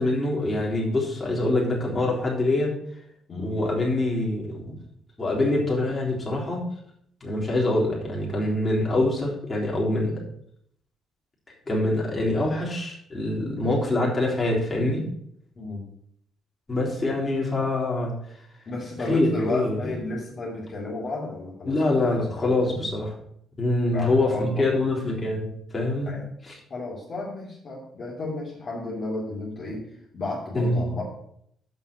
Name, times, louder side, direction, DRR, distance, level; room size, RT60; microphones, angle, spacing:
voice 1, 0.0-2.7 3.4-4.8 5.2-6.6 7.2-10.2 11.7-15.0 16.7-18.1 19.0-19.8 21.6-23.1 23.6-26.1 26.4-26.5 30.5-30.9, left 2 dB, 25° left, -3 dB, 3.5 m, -25 dB
voice 2, 15.5-15.9 18.7-22.8 23.9-24.6 26.0-26.2 26.7-29.9 30.1-31.0, left 2 dB, 45° left, -5 dB, 2.8 m, -33 dB
7.4 x 5.6 x 6.7 m, 0.69 s
cardioid pair, 90°, 0 cm